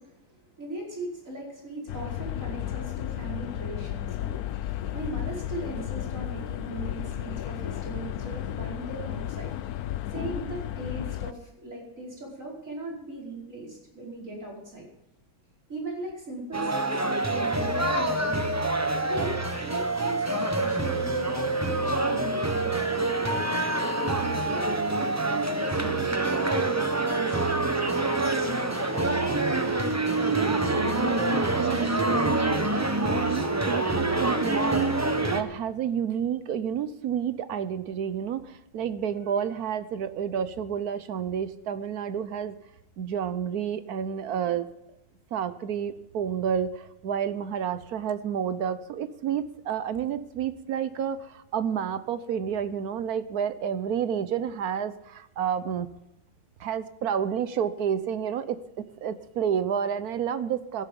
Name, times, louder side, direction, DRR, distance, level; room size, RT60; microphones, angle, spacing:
voice 1, 0.0-9.6 10.1-14.9 15.7-18.5 19.1-23.1 24.0-29.3, right 2 dB, 35° right, -3 dB, 5.3 m, -39 dB
sound 1, 1.9-11.3, left 12 dB, 70° left, 0.9 m, -33 dB
sound 2, 16.5-35.4, right 2 dB, 20° right, 0.4 m, -26 dB
voice 2, 30.3-42.6 43.0-44.7 45.3-55.9 56.6-60.8, right 8 dB, 65° right, 13 dB, 1.0 m, -30 dB
17.5 x 10.5 x 5.3 m, 0.89 s
omnidirectional pair, 2.3 m